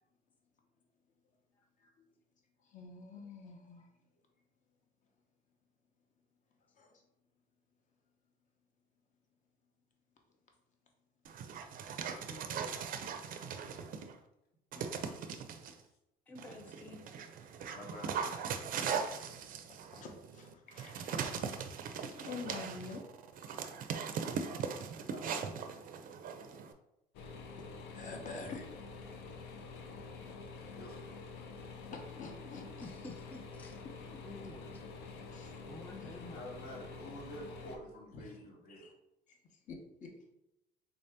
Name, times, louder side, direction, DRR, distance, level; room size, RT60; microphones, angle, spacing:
voice 1, 2.6-3.9 6.7-7.0 12.3-12.4 19.9-21.2 22.0-23.0 23.5-23.6 27.9-28.7 31.9-32.9 34.1-34.2 35.3-35.6 36.0-36.2 38.1-38.4 38.7-38.9 39.3-40.3, left 4 dB, 50° left, 3 dB, 0.8 m, -47 dB
Dog, 11.2-14.1 14.7-15.7 16.4-26.7, right 6 dB, 55° right, 0.4 m, -40 dB
voice 2, 12.1-13.8 14.7-15.4 17.7-18.2 25.1-25.6 30.6-31.0 36.1-38.9, left 1 dB, 70° left, -1 dB, 1.1 m, -50 dB
voice 3, 16.3-17.1 32.8-33.8 34.2-34.8 35.7-36.5, left 2 dB, 10° left, 3 dB, 0.3 m, -50 dB
sound 1, 27.1-37.8, left 4 dB, 85° left, 0.5 m, -48 dB
3.6 x 2.7 x 3.3 m, 0.84 s
cardioid pair, 110°, 17 cm